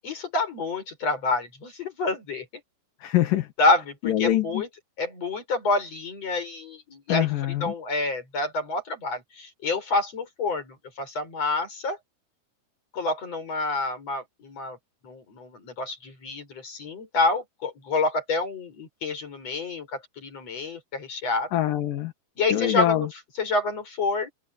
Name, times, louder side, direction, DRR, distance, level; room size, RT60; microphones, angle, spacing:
voice 1, 0.0-2.5 3.6-4.7 5.0-7.3 7.6-12.0 12.9-14.8 15.0-21.5 22.4-23.1 23.4-24.3, left 3 dB, 40° left, 7.2 m, -28 dB
voice 2, 3.0-3.5 4.0-4.6 7.1-7.7 21.5-22.1 22.5-23.1, left 13 dB, 65° left, 3.0 m, -24 dB
omnidirectional pair, 4.6 m